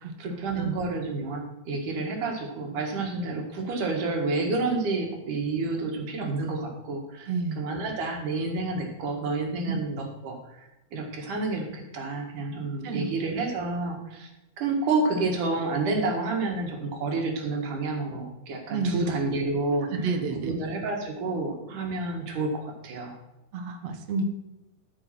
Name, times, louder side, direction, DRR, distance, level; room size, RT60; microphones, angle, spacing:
voice 1, 0.2-14.3 14.6-20.1 20.3-23.2, right 3 dB, 80° right, 2 dB, 3.3 m, -29 dB
voice 2, 7.3-7.6 9.7-9.8 12.8-13.1 18.7-19.1 19.9-20.6 23.5-24.2, right 4 dB, 60° right, 6 dB, 2.1 m, -30 dB
12.5 x 5.5 x 5.9 m, 0.95 s
omnidirectional pair, 3.6 m